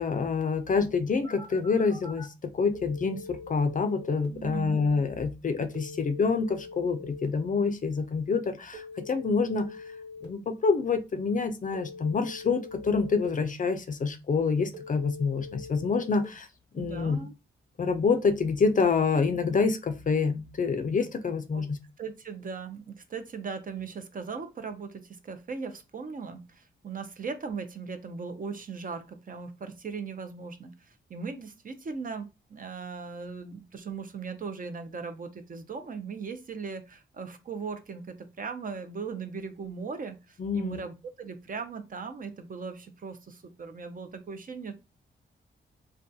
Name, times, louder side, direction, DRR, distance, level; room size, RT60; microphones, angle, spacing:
voice 1, 0.0-9.7 10.2-16.5 16.7-17.2 17.8-21.8 40.4-40.8, left 4 dB, 40° left, 0.4 m, -27 dB
Telephone, 1.2-2.2 2.7-4.2 5.7-7.2 8.7-10.2 11.7-13.2 14.7-16.2, left 4 dB, 65° right, 1.3 m, -44 dB
voice 2, 4.3-4.8 16.8-17.3 21.5-21.6 22.0-44.7, right 5 dB, 45° right, 0.5 m, -38 dB
2.2 x 2.2 x 2.6 m
cardioid pair, 60°, 21 cm